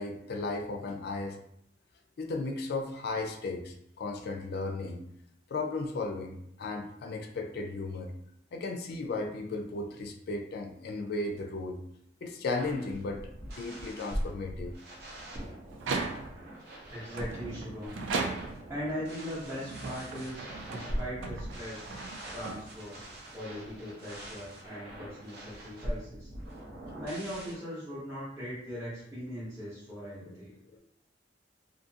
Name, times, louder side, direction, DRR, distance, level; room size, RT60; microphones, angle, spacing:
voice 1, 0.0-1.4 2.2-5.1 5.5-8.1 8.5-11.8 12.2-14.8 30.2-30.4 30.7-30.8, left 3 dB, 55° left, 4 dB, 0.4 m, -35 dB
sound 1, 12.5-27.5, equal, 60° right, 0.7 m, -42 dB
sound 2, 15.7-16.5 17.1-18.8 19.5-23.0, right 4 dB, 90° right, 0.3 m, -37 dB
voice 2, 16.8-18.0 18.7-21.9 22.3-23.0 23.3-26.3 26.9-30.5, equal, 15° right, -12 dB, 0.8 m, -39 dB
2.6 x 2.4 x 2.7 m, 0.74 s
head